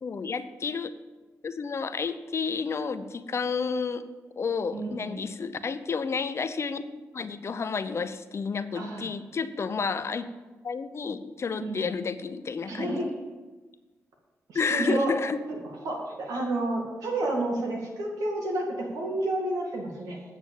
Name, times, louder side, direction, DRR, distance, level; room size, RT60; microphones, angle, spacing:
voice 1, 0.0-0.9 1.4-4.0 4.4-10.3 10.6-13.0 14.5-15.4, left 5 dB, 50° left, 12 dB, 0.7 m, -31 dB
voice 2, 4.7-5.3 8.7-9.1 11.6-11.9 12.6-13.1 14.5-15.1 15.5-15.6 15.8-20.2, right 2 dB, 90° right, 0 dB, 2.3 m, -30 dB
9.1 x 6.2 x 7.1 m, 1.2 s
cardioid pair, 65°, 6 cm